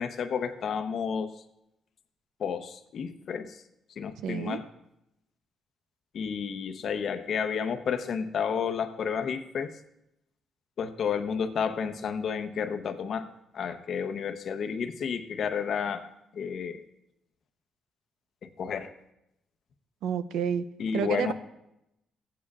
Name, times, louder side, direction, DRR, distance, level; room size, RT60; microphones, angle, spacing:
voice 1, 0.0-1.4 2.4-3.6 4.0-4.6 6.1-9.8 10.8-13.3 13.5-16.8 18.4-18.9 20.8-21.3, left 6 dB, 60° left, 8 dB, 0.8 m, -31 dB
voice 2, 4.2-4.6 20.0-20.6 20.9-21.3, right 8 dB, 85° right, 13 dB, 0.5 m, -29 dB
16.0 x 8.6 x 2.4 m, 0.84 s
cardioid pair, 90°, 0 cm